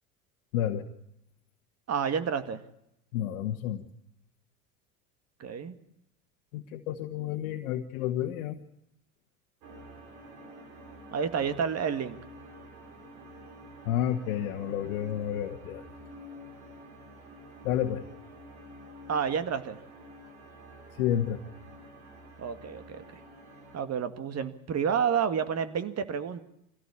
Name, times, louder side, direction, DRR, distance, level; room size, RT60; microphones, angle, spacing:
voice 1, 0.5-0.8 3.1-3.8 6.5-8.6 13.8-15.8 17.6-18.0 21.0-21.4, left 11 dB, 65° left, 3 dB, 1.5 m, -30 dB
voice 2, 1.9-2.6 5.4-5.7 11.1-12.2 19.1-19.8 22.4-23.2 23.7-26.4, right 7 dB, 35° right, 10 dB, 2.0 m, -30 dB
sound 1, 9.6-23.8, equal, 70° right, 5.9 m, -49 dB
24.5 x 16.5 x 8.5 m, 0.80 s
hypercardioid pair, 80°, 43 cm